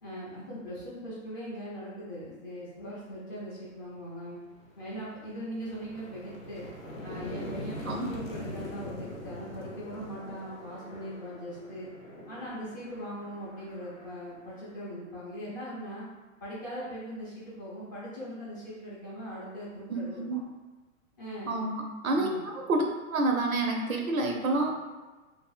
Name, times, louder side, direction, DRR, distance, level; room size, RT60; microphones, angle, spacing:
voice 1, 0.0-4.4 4.8-6.7 7.0-11.9 12.3-16.1 16.4-20.4 21.2-21.6 22.1-22.4, equal, 15° left, -9 dB, 0.3 m, -40 dB
sound 1, 3.8-4.0 4.4-15.2, left 1 dB, 80° left, 0.7 m, -43 dB
voice 2, 19.9-20.4 21.5-22.3 22.5-22.8 23.1-24.7, right 2 dB, 85° right, 2 dB, 0.6 m, -28 dB
2.5 x 2.4 x 2.3 m, 1.2 s
figure-of-eight pair, 105°, 41 cm